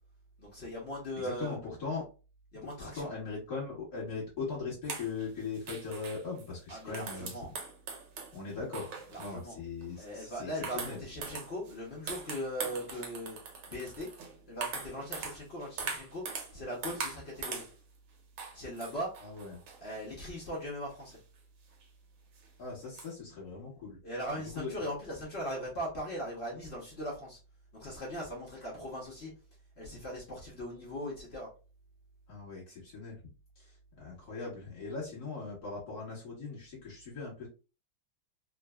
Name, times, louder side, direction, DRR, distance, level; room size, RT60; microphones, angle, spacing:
voice 1, 0.4-1.6 2.5-3.1 6.7-7.5 9.1-9.6 10.0-13.4 13.7-14.1 14.5-16.2 16.5-17.6 18.5-19.1 19.8-21.2 24.0-27.4 27.7-29.3 29.8-31.5, equal, 70° left, -4 dB, 0.6 m, -39 dB
voice 2, 1.2-2.0 2.8-7.3 8.3-11.0 19.2-19.6 22.6-24.0 24.3-24.9 32.3-33.2 33.6-37.5, left 4 dB, 50° left, -5 dB, 1.6 m, -40 dB
sound 1, 4.8-9.4 9.8-10.1 10.6-11.7 12.1-16.6 16.8-17.7 18.4-20.0 21.1-21.2 21.8-21.9 22.4-22.5 23.0-23.1, right 5 dB, 75° right, 1.6 m, -41 dB
3.6 x 2.0 x 2.3 m, 0.33 s
omnidirectional pair, 2.3 m